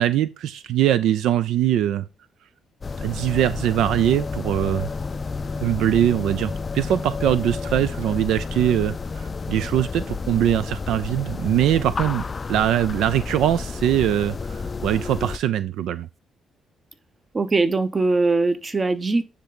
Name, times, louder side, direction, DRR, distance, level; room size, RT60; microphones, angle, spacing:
voice 1, 0.0-2.1 3.0-4.9 5.6-12.2 12.5-16.1, right 11 dB, 80° right, 0.4 m, -22 dB
sound 1, 2.8-15.4, left 4 dB, 35° left, 0.3 m, -31 dB
voice 2, 17.3-19.2, right 3 dB, 30° right, 0.8 m, -21 dB
9.9 x 3.3 x 3.9 m
cardioid pair, 90°, 0 cm